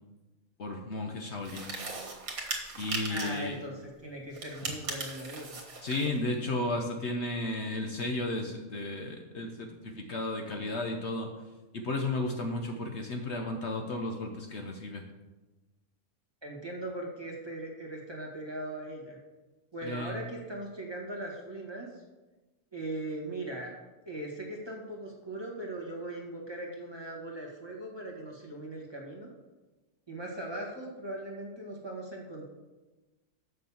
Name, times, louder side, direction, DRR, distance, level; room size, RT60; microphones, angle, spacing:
voice 1, 0.6-1.8 2.8-3.6 5.8-11.3 11.7-15.0 19.8-20.2, left 2 dB, 55° left, 3 dB, 1.0 m, -34 dB
sound 1, 1.4-3.5 4.3-6.1, right 3 dB, 80° right, 1.9 m, -38 dB
voice 2, 3.1-5.6 16.4-19.2 19.7-21.9 22.7-23.7 24.0-29.3 30.1-32.5, right 1 dB, 20° right, -2 dB, 1.7 m, -39 dB
6.5 x 6.5 x 7.2 m, 1.1 s
omnidirectional pair, 1.5 m